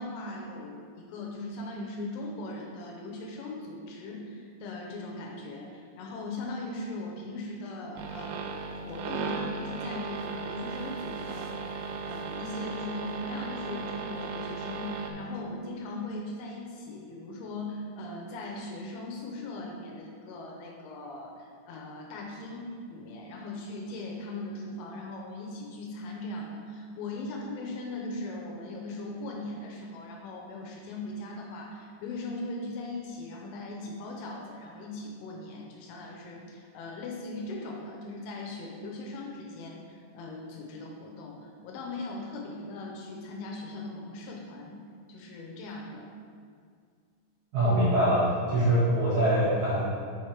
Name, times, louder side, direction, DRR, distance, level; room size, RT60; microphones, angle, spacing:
voice 1, 0.0-46.1, left 2 dB, 80° left, 0 dB, 3.1 m, -39 dB
sound 1, 8.0-15.1, right 5 dB, 85° right, 2.8 m, -36 dB
voice 2, 47.5-49.8, right 1 dB, 60° right, -9 dB, 2.9 m, -23 dB
7.1 x 5.9 x 3.3 m, 2.1 s
omnidirectional pair, 5.7 m